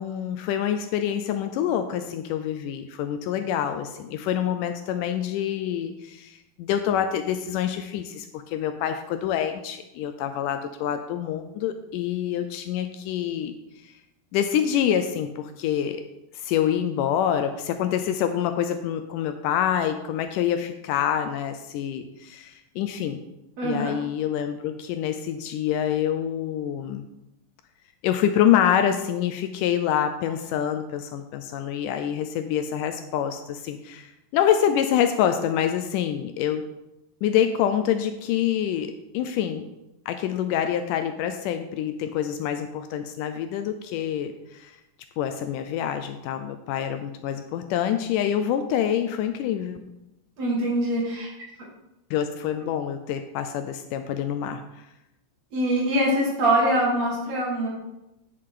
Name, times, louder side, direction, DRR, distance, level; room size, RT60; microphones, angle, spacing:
voice 1, 0.0-13.5 13.8-13.9 14.3-16.0 16.3-23.2 23.6-27.1 28.0-36.6 37.2-39.6 40.1-44.7 45.2-49.8 52.1-54.6, left 9 dB, 80° left, 8 dB, 2.0 m, -26 dB
voice 2, 23.6-23.9 50.4-51.3 55.5-57.7, right 1 dB, 55° right, -3 dB, 3.0 m, -23 dB
9.4 x 6.5 x 3.8 m, 0.91 s
omnidirectional pair, 3.9 m